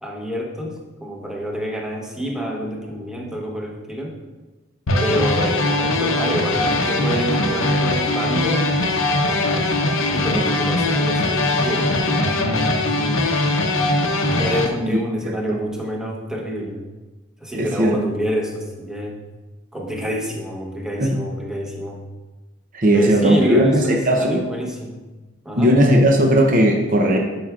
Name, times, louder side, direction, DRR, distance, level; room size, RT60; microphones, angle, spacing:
voice 1, 0.0-4.2 5.0-8.7 10.1-12.3 12.9-13.3 14.3-16.8 17.4-19.1 19.7-22.0 22.9-25.0 25.4-25.8, equal, 5° right, -1 dB, 0.9 m, -27 dB
sound 1, 4.9-14.7, left 2 dB, 75° left, 0.8 m, -20 dB
voice 2, 14.9-15.6 17.5-18.0 21.0-21.2 22.7-24.4 25.6-27.2, equal, 40° right, 1 dB, 0.7 m, -17 dB
12.0 x 5.7 x 2.5 m, 1.2 s
head